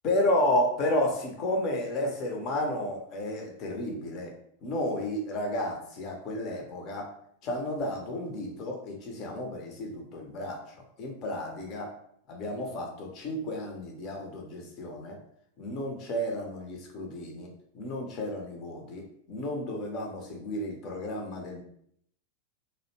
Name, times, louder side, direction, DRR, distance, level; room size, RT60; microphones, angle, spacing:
voice 1, 0.0-4.3 4.6-7.1 7.4-10.6 11.0-11.9 12.3-15.2 15.6-17.5 17.7-21.6, left 1 dB, 35° left, 1 dB, 0.7 m, -32 dB
2.6 x 2.1 x 2.8 m, 0.67 s
figure-of-eight pair, 90°, 0 cm